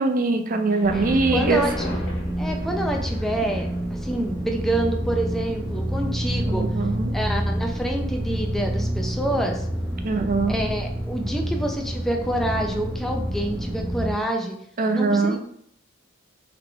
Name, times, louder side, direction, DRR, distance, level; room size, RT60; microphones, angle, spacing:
voice 1, 0.0-1.6 6.5-7.1 10.0-10.6 14.8-15.4, right 3 dB, 45° right, 6 dB, 0.5 m, -22 dB
Thunder, 0.7-12.5 13.3-13.4, left 1 dB, 65° left, 1.6 m, -43 dB
sound 1, 0.8-14.1, right 1 dB, 15° right, 1.0 m, -28 dB
voice 2, 0.9-1.9 2.4-6.6 7.1-9.7 10.5-14.5 14.9-15.4, right 1 dB, ahead, 1 dB, 0.6 m, -27 dB
3.8 x 3.5 x 3.4 m, 0.66 s
head